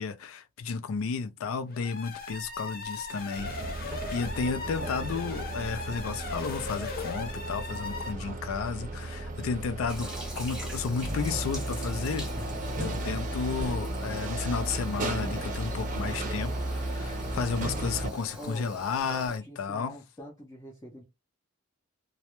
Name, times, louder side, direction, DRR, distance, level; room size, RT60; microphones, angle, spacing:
voice 1, 0.0-10.1 10.4-12.3 12.8-19.9, left 5 dB, 90° left, 0.4 m, -33 dB
sound 1, 1.7-8.1, left 3 dB, 50° left, 0.7 m, -39 dB
sound 2, 3.3-18.1, right 1 dB, 40° right, 0.5 m, -34 dB
Toilet flush, 9.9-19.4, right 1 dB, 5° right, 0.9 m, -44 dB
voice 2, 18.4-21.0, left 1 dB, 15° left, 0.4 m, -45 dB
2.2 x 2.0 x 2.9 m
head